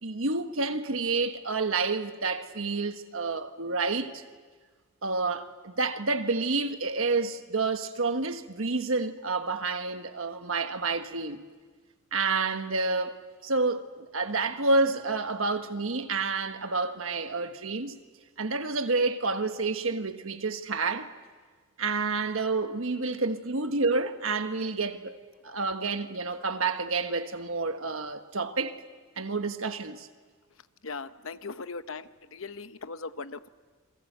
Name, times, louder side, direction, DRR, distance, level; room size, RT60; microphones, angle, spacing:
voice 1, 0.0-4.2 5.0-11.4 12.1-13.2 13.4-18.0 18.4-21.1 21.8-25.2 25.4-28.8 29.2-30.1, right 3 dB, 70° right, 1.5 m, -29 dB
voice 2, 30.8-33.5, left 4 dB, 65° left, 0.9 m, -39 dB
28.0 x 23.0 x 8.1 m
head